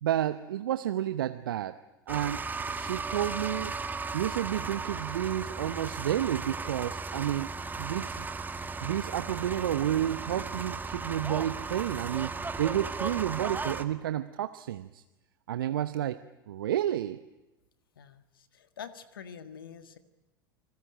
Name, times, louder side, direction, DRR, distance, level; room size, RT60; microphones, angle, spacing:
voice 1, 0.0-1.8 2.1-3.7 4.1-7.5 7.8-8.3 8.8-12.3 12.6-15.0 15.5-16.2 16.5-17.2, right 11 dB, 70° right, 12 dB, 0.9 m, -31 dB
sound 1, 2.1-13.8, right 4 dB, 15° right, 1.8 m, -36 dB
voice 2, 17.9-20.0, left 7 dB, 75° left, 11 dB, 1.7 m, -46 dB
29.5 x 20.5 x 9.0 m, 1.0 s
figure-of-eight pair, 80°, 12 cm